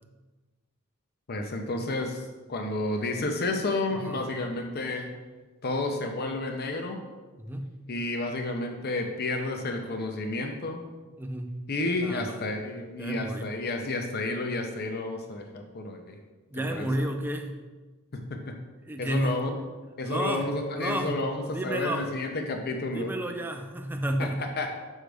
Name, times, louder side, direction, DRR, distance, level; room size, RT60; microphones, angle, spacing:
voice 1, 1.3-2.2 2.5-5.1 5.6-7.0 7.9-10.8 11.7-16.2 16.7-17.1 18.1-18.6 19.0-19.5 20.0-23.1 24.2-24.7, left 2 dB, 45° left, 4 dB, 0.6 m, -31 dB
voice 2, 7.4-7.7 11.2-11.5 12.0-12.6 13.0-13.5 16.5-17.6 18.8-19.4 20.0-20.5 20.8-21.2 21.5-22.1 22.9-24.4, right 1 dB, 10° right, 4 dB, 0.5 m, -31 dB
6.3 x 5.1 x 3.4 m, 1.3 s
head